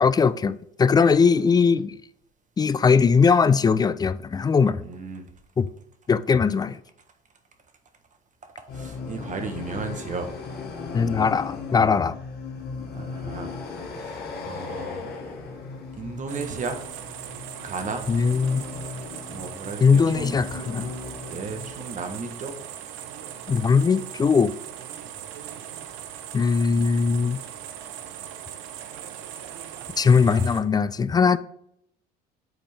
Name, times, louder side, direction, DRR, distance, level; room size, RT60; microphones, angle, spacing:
voice 1, 0.0-2.0 2.6-4.8 5.6-5.7 6.1-6.8 10.9-12.2 18.1-18.6 19.8-20.9 23.5-24.5 26.3-27.4 30.0-31.4, left 5 dB, 20° left, 0.3 m, -20 dB
voice 2, 4.8-5.3 8.6-10.3 12.9-13.5 13.9-15.1 15.9-16.8 17.6-18.1 19.3-20.3 21.3-22.6, right 4 dB, 35° right, 1.3 m, -34 dB
sound 1, 8.7-21.8, left 4 dB, 50° left, 1.5 m, -37 dB
sound 2, 16.3-30.6, right 10 dB, 70° right, 0.7 m, -39 dB
7.9 x 4.3 x 3.4 m
hypercardioid pair, 70°, 21 cm